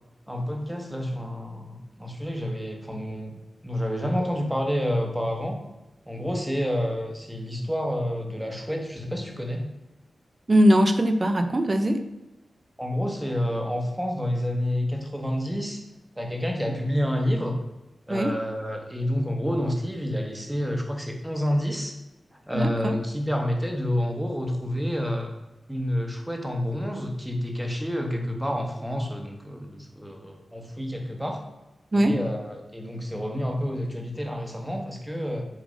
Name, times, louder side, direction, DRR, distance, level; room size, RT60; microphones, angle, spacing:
voice 1, 0.3-5.6 6.0-9.7 12.8-15.8 16.2-17.6 18.1-22.0 22.5-25.3 25.7-31.4 31.9-35.5, equal, 5° right, 2 dB, 1.3 m, -29 dB
voice 2, 10.5-12.0 18.1-18.4 22.5-23.0 31.9-32.2, equal, 35° right, 7 dB, 0.7 m, -21 dB
7.5 x 3.4 x 5.1 m, 0.98 s
wide cardioid pair, 75°, 0 cm